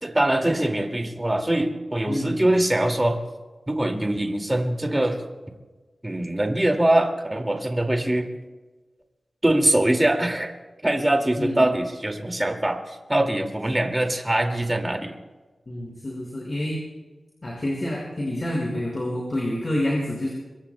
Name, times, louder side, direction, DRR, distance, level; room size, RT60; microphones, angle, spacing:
voice 1, 0.0-3.2 3.7-5.2 6.0-8.3 9.4-10.5 10.8-15.1, right 1 dB, 20° right, 3 dB, 2.2 m, -23 dB
voice 2, 2.1-2.5 2.8-2.9 11.4-11.7 15.7-16.8 17.4-20.3, left 1 dB, 40° left, -3 dB, 5.2 m, -28 dB
26.0 x 22.0 x 2.2 m, 1.2 s
wide cardioid pair, 75°, 0 cm